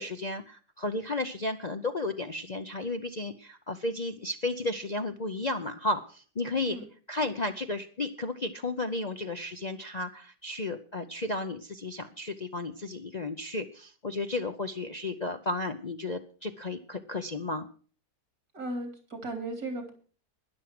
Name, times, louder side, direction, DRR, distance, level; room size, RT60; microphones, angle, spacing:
voice 1, 0.0-6.8 7.1-17.7, left 2 dB, 35° left, 6 dB, 0.7 m, -33 dB
voice 2, 18.5-19.9, right 2 dB, 65° right, 5 dB, 4.1 m, -36 dB
12.5 x 11.0 x 6.0 m, 0.41 s
omnidirectional pair, 1.6 m